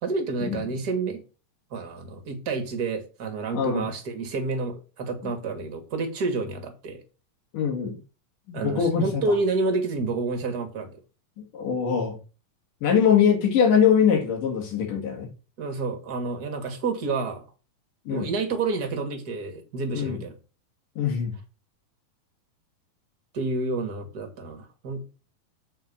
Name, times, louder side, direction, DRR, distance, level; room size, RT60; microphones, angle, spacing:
voice 1, 0.0-1.2 1.7-7.0 8.5-11.0 15.6-17.4 18.1-20.4 23.3-25.0, right 3 dB, 40° right, 1.5 m, -29 dB
voice 2, 3.5-3.9 5.2-5.3 7.5-8.0 8.5-9.2 11.5-12.2 12.8-15.3 18.1-18.3 19.9-20.2 21.0-21.3, left 7 dB, 80° left, 3.6 m, -22 dB
7.7 x 4.4 x 6.7 m
omnidirectional pair, 3.7 m